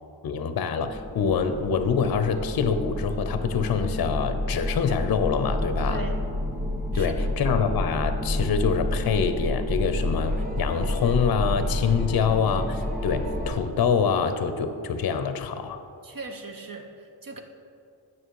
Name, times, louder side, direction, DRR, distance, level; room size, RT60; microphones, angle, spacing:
voice 1, 0.2-6.0 6.9-15.8, left 6 dB, 55° left, 9 dB, 0.6 m, -25 dB
sound 1, 0.9-13.5, left 1 dB, 5° right, 1.6 m, -29 dB
voice 2, 5.9-6.2 6.9-7.3 16.0-17.4, right 3 dB, 50° right, 4 dB, 0.8 m, -39 dB
sound 2, 10.2-13.7 15.0-15.1, right 2 dB, 20° right, 0.5 m, -45 dB
9.0 x 6.0 x 4.7 m, 2.5 s
wide cardioid pair, 115°, 43 cm